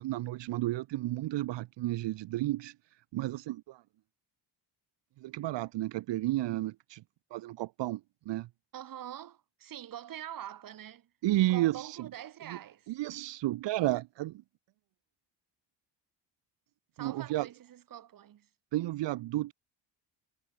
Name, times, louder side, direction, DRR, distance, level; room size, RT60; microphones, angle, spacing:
voice 1, 0.0-2.7 3.1-3.8 5.2-7.0 7.3-8.0 8.3-8.5 11.2-12.0 12.5-12.6 12.9-14.4 17.0-17.5 18.7-19.5, right 16 dB, 75° right, 2.3 m, -32 dB
voice 2, 8.7-11.1 11.5-12.9 17.0-18.5, right 11 dB, 50° right, 5.6 m, -44 dB
cardioid pair, 175°, 43 cm